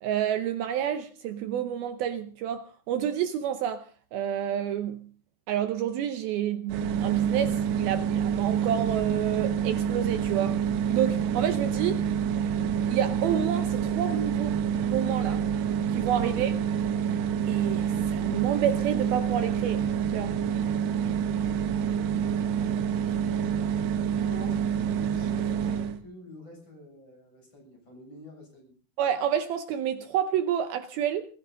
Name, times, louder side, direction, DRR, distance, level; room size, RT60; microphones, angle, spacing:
voice 1, 0.0-5.0 5.5-10.6 10.9-12.0 12.9-15.4 15.9-16.5 17.5-19.8 20.1-20.4 29.0-31.3, right 9 dB, 90° right, 2.1 m, -29 dB
sound 1, 6.7-26.0, right 8 dB, 70° right, 3.1 m, -27 dB
voice 2, 22.4-23.6 24.0-28.7, left 1 dB, 25° left, 7.3 m, -48 dB
21.0 x 15.5 x 3.9 m
omnidirectional pair, 5.6 m